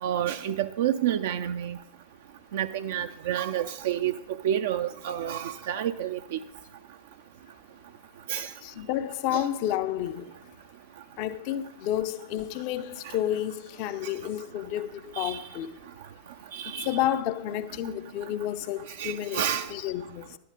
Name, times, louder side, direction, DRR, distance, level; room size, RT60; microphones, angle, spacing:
voice 1, 0.0-1.8 2.5-4.2 4.4-6.4 8.3-8.5 9.3-9.5 13.0-13.2 15.2-15.4 16.5-17.0 19.0-19.7, right 10 dB, 55° right, 0.4 m, -29 dB
voice 2, 8.6-10.3 11.2-15.7 16.8-19.4 19.7-20.4, left 12 dB, 45° left, 0.6 m, -30 dB
11.0 x 9.6 x 5.0 m
figure-of-eight pair, 90°, 0 cm